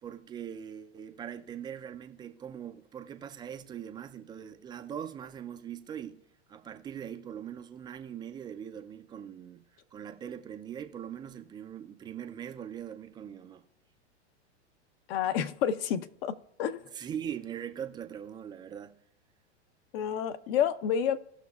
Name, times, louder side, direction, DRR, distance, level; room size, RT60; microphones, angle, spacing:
voice 1, 0.0-6.2 6.5-9.6 9.9-13.7 16.9-19.0, right 9 dB, 15° right, 0.3 m, -41 dB
voice 2, 15.1-16.8 19.9-21.2, left 8 dB, 55° left, 0.7 m, -29 dB
18.0 x 6.1 x 2.3 m
hypercardioid pair, 120°, 34 cm